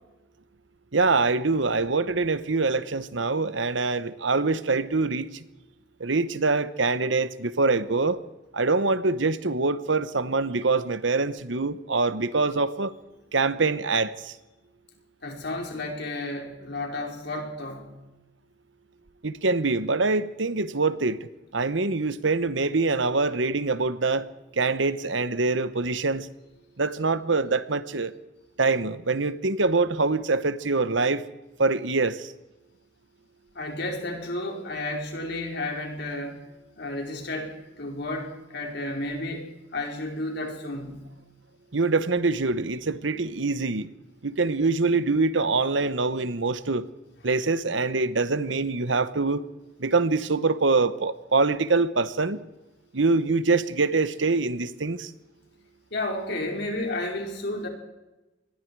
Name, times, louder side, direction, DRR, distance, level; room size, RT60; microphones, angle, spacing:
voice 1, 0.9-5.4 6.0-8.2 8.5-12.9 13.3-14.4 19.2-24.3 24.6-26.3 26.8-28.1 28.6-31.2 31.6-32.3 41.7-43.9 44.2-46.9 47.2-49.4 49.8-52.4 52.9-55.1, right 3 dB, 70° right, 1.1 m, -24 dB
voice 2, 15.2-17.9 33.5-36.4 36.8-41.0 55.9-57.7, left 2 dB, 60° left, 4.9 m, -32 dB
26.0 x 21.5 x 4.8 m
head